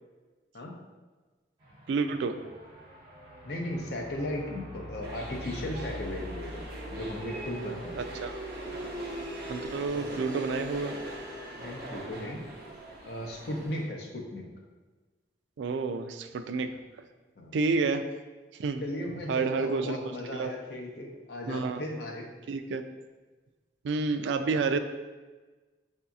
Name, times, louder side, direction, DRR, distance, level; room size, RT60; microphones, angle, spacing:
sound 1, 1.6-12.0, left 1 dB, 25° right, 1.3 m, -45 dB
voice 1, 1.9-2.4 8.0-8.3 9.5-10.9 15.6-16.7 17.5-18.1 18.6-18.8 19.3-20.0 20.3-20.5 21.5-21.8 22.5-22.8 23.8-24.8, right 4 dB, 75° right, 8 dB, 0.3 m, -29 dB
voice 2, 3.4-6.6 6.9-8.0 10.0-10.1 11.6-12.4 13.1-14.4 17.4-17.6 18.8-22.3, left 1 dB, 60° left, 0 dB, 0.7 m, -36 dB
sound 2, 5.0-13.8, right 1 dB, 55° right, 0.8 m, -41 dB
6.2 x 2.7 x 2.3 m, 1.3 s
head